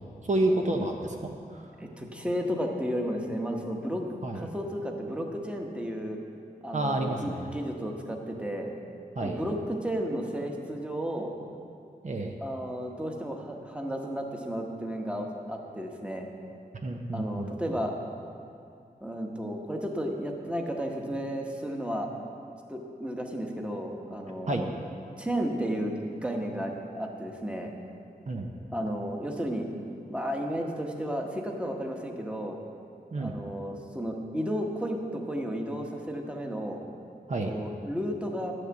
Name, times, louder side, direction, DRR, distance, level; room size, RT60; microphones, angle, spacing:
voice 1, 0.2-1.6 4.2-4.5 6.7-7.5 9.2-9.4 12.0-12.3 16.8-17.5 24.5-24.6 28.3-28.5 33.1-33.4 37.3-37.5, right 2 dB, 45° right, 1 dB, 0.8 m, -29 dB
voice 2, 1.8-4.0 4.3-6.2 6.6-8.7 9.2-11.3 12.4-16.3 17.1-17.9 19.0-22.1 22.7-24.7 25.2-27.7 28.7-29.7 30.1-32.6 33.2-36.8 37.4-38.5, equal, 5° right, 1 dB, 1.2 m, -33 dB
10.5 x 6.5 x 7.7 m, 2.5 s
wide cardioid pair, 85°, 16 cm